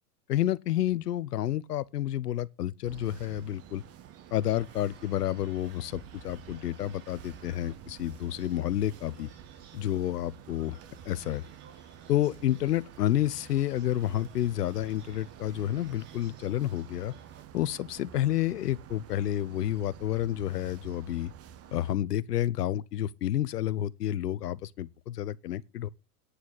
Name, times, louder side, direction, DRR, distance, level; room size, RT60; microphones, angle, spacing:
voice 1, 0.3-3.8 4.3-9.3 9.7-10.8 11.1-11.4 12.1-17.1 17.5-21.3 21.7-25.9, left 12 dB, 85° left, 0.8 m, -30 dB
sound 1, 2.8-21.9, right 9 dB, 30° right, 1.2 m, -50 dB
sound 2, 3.2-17.4, right 6 dB, 50° right, 4.9 m, -58 dB
9.7 x 6.2 x 8.7 m
hypercardioid pair, 110°, 46 cm